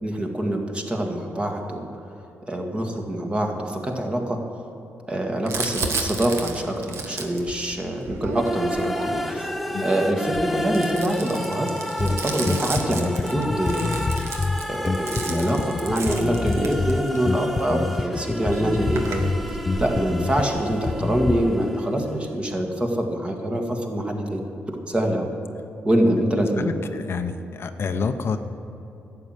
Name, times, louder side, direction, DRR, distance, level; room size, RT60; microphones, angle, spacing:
voice 1, 0.0-1.9 2.5-4.4 5.1-9.5 9.8-11.7 12.0-14.0 14.7-19.2 19.8-25.3 25.8-26.7, right 1 dB, 20° right, 2 dB, 1.8 m, -25 dB
Crumpling crinkling, 5.5-9.5 10.2-17.3 18.1-18.2 18.4-20.0, right 4 dB, 65° right, 1.5 m, -33 dB
sound 1, 8.3-22.2, left 1 dB, ahead, 0.8 m, -32 dB
Bass guitar, 12.0-21.6, left 3 dB, 25° left, 0.4 m, -27 dB
voice 2, 26.6-28.4, left 5 dB, 55° left, 8 dB, 0.7 m, -28 dB
11.5 x 7.7 x 9.1 m, 3.0 s
cardioid pair, 85°, 5 cm